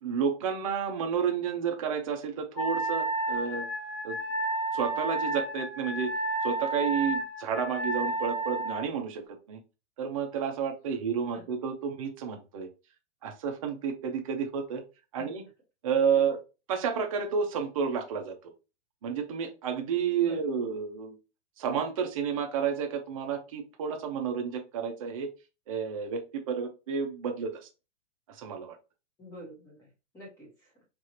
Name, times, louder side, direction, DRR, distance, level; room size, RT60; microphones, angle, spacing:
voice 1, 0.0-3.7 4.0-4.2 4.7-6.1 6.4-9.2 9.5-9.6 10.0-12.7 13.2-14.8 15.1-15.4 15.8-16.4 16.7-18.3 19.0-21.2 21.6-25.3 25.7-27.7 28.3-28.8, right 6 dB, 30° right, 3 dB, 0.5 m, -31 dB
Wind instrument woodwind instrument, 2.6-8.9, right 2 dB, 25° left, 0.5 m, -31 dB
voice 2, 20.2-20.6 29.2-30.8, equal, 10° left, -4 dB, 1.1 m, -48 dB
4.6 x 2.4 x 2.8 m, 0.30 s
hypercardioid pair, 165°, 36 cm